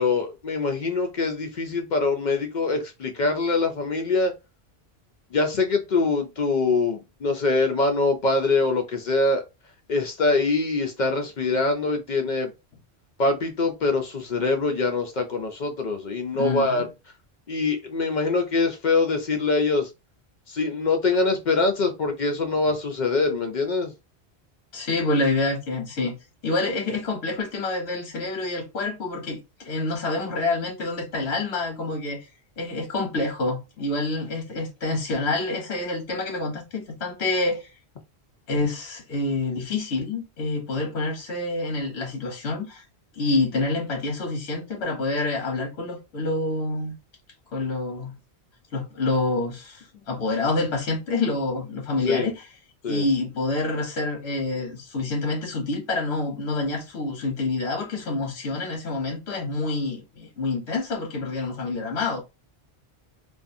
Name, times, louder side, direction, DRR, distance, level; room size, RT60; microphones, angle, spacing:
voice 1, 0.0-4.3 5.3-9.4 9.9-12.5 13.2-16.9 17.5-19.9 20.5-23.9 52.0-52.3 52.8-53.0, left 3 dB, 60° left, 0.5 m, -24 dB
voice 2, 16.3-16.8 24.7-26.2 26.4-32.3 32.6-37.7 38.5-42.8 43.1-47.0 47.5-48.2 48.7-52.5 52.9-62.2, left 2 dB, 85° left, 1.1 m, -27 dB
2.5 x 2.3 x 2.5 m
omnidirectional pair, 1.1 m